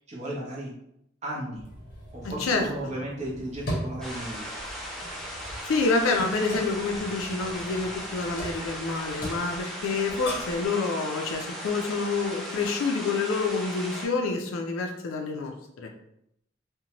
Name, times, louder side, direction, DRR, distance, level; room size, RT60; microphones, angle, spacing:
voice 1, 0.1-0.7 1.2-1.6 2.1-4.6, right 1 dB, 35° right, -4 dB, 0.6 m, -35 dB
sound 1, 1.5-10.7, equal, 45° left, 0.7 m, -39 dB
voice 2, 2.2-2.7 5.6-15.9, left 3 dB, 85° left, 3 dB, 0.4 m, -28 dB
sound 2, 4.0-14.1, equal, ahead, 0.4 m, -37 dB
2.6 x 2.1 x 2.9 m, 0.77 s
head